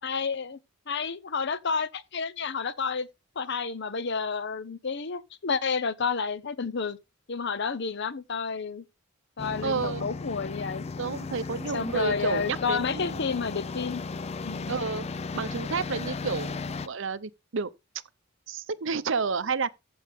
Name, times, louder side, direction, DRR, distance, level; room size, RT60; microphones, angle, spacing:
voice 1, 0.0-0.6 0.9-3.1 3.4-7.0 7.3-8.8 9.4-10.9 11.7-14.0 14.4-14.8, left 5 dB, 55° left, 0.8 m, -30 dB
sound 1, 9.4-16.9, left 4 dB, 30° left, 0.4 m, -35 dB
voice 2, 9.6-10.1 11.0-13.2 14.7-15.1 15.3-17.7 18.5-19.7, right 5 dB, 60° right, 0.6 m, -30 dB
14.0 x 5.2 x 3.6 m
head